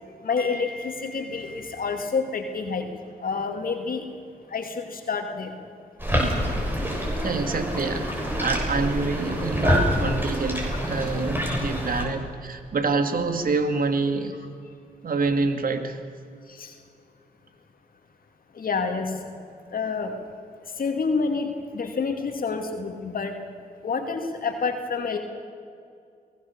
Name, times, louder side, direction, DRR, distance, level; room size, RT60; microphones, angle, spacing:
voice 1, 0.2-2.9 3.2-4.0 4.5-5.5 11.4-11.6 11.9-12.0 16.5-16.7 18.5-19.2 19.7-20.1 20.8-23.4 23.8-25.2, left 4 dB, 65° left, 4 dB, 2.6 m, -28 dB
sound 1, 6.0-12.0, equal, 15° right, 6.9 m, -26 dB
voice 2, 7.2-8.1 8.4-14.4 15.0-16.0, right 3 dB, 60° right, 7 dB, 2.2 m, -26 dB
23.0 x 18.0 x 7.2 m, 2.3 s
supercardioid pair, 50°, 16 cm